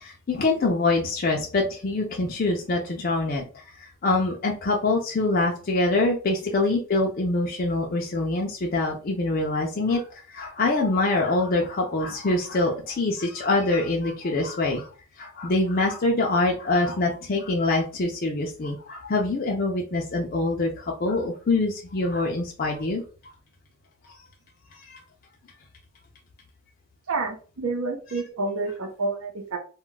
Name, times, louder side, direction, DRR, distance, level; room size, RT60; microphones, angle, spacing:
voice 1, 0.0-14.9 15.2-23.0 24.8-25.0, left 2 dB, 40° left, 0 dB, 0.4 m, -25 dB
voice 2, 27.1-29.6, right 3 dB, 75° right, 3 dB, 0.7 m, -29 dB
2.3 x 2.2 x 3.8 m, 0.38 s
head